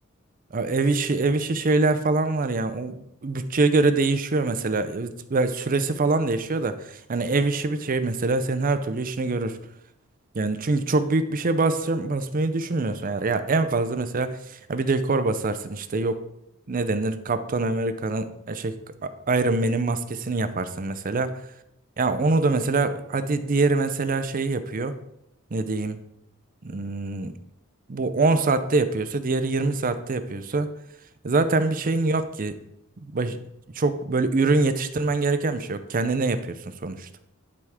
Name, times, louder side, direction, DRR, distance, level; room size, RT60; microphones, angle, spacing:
voice 1, 0.5-9.6 10.3-16.2 16.7-18.8 19.0-21.3 22.0-24.9 25.5-26.0 26.6-27.3 27.9-30.7 31.2-32.5 33.1-33.4 33.7-37.1, right 3 dB, 40° right, 11 dB, 0.5 m, -24 dB
11.0 x 4.8 x 3.6 m, 0.81 s
head